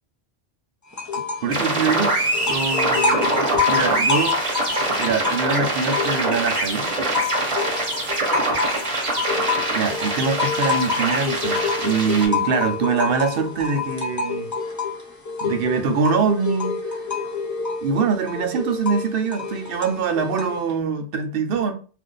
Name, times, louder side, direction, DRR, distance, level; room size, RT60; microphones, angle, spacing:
sound 1, 0.9-1.5 1.8-6.5 6.9-20.7, left 5 dB, 30° left, 0.4 m, -27 dB
voice 1, 1.4-2.1 2.4-4.7 5.0-6.9 9.7-14.5 15.4-17.0 17.8-21.7, right 5 dB, 65° right, 0.8 m, -24 dB
sound 2, 1.5-12.3, right 2 dB, 35° right, 0.8 m, -24 dB
2.5 x 2.4 x 3.7 m
omnidirectional pair, 1.1 m